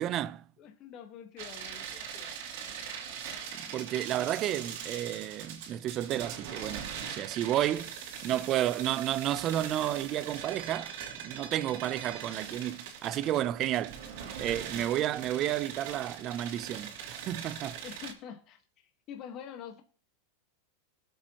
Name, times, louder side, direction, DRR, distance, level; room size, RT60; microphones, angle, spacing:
voice 1, 0.0-0.4 3.5-14.0 14.4-17.8, right 12 dB, 35° right, 0.5 m, -32 dB
voice 2, 0.6-2.4 17.8-18.6 19.1-19.8, left 8 dB, 35° left, 1.4 m, -45 dB
sound 1, 1.4-18.1, right 7 dB, 60° right, 2.9 m, -41 dB
21.0 x 7.8 x 3.0 m
supercardioid pair, 145°, 0 cm